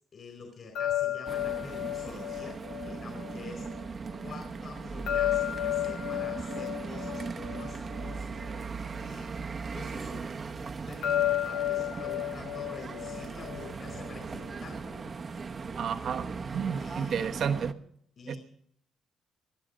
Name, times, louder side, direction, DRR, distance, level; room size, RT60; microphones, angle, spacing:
voice 1, 0.1-3.9 4.2-9.3 9.7-15.4 15.7-15.8 16.8-17.3 18.2-18.4, left 4 dB, 50° left, 3 dB, 4.1 m, -47 dB
sound 1, 0.8-3.8 5.1-8.6 11.0-14.1, left 13 dB, 85° left, 0.9 m, -32 dB
sound 2, 1.3-17.7, right 4 dB, 40° right, 0.9 m, -38 dB
voice 2, 15.8-17.7 18.3-18.4, right 7 dB, 65° right, 6 dB, 1.2 m, -31 dB
20.5 x 12.5 x 5.2 m, 0.66 s
cardioid pair, 90°, 0 cm